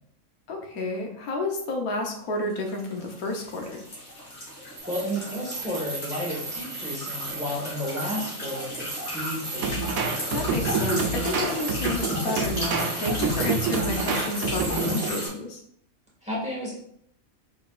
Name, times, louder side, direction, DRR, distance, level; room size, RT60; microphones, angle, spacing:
voice 1, 0.5-3.8 10.3-15.6, left 2 dB, 90° left, 2 dB, 1.3 m, -30 dB
sound 1, 2.5-15.3, equal, 60° left, 2.3 m, -35 dB
sound 2, 4.8-15.3, right 3 dB, 40° right, 1.0 m, -38 dB
voice 2, 4.9-10.1 16.2-16.7, equal, 5° right, -6 dB, 1.6 m, -32 dB
sound 3, 9.6-15.1, right 4 dB, 80° right, 1.1 m, -28 dB
4.8 x 4.2 x 2.4 m, 0.69 s
omnidirectional pair, 1.5 m